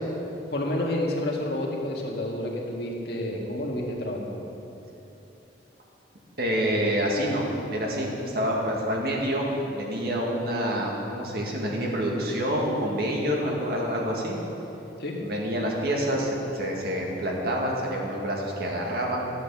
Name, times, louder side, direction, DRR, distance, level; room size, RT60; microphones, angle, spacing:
voice 1, 0.5-4.4 15.0-15.1, left 1 dB, 60° left, -1 dB, 2.0 m, -29 dB
voice 2, 6.4-14.4 15.2-19.3, equal, 60° right, -2 dB, 2.1 m, -27 dB
12.5 x 8.5 x 7.0 m, 3.0 s
head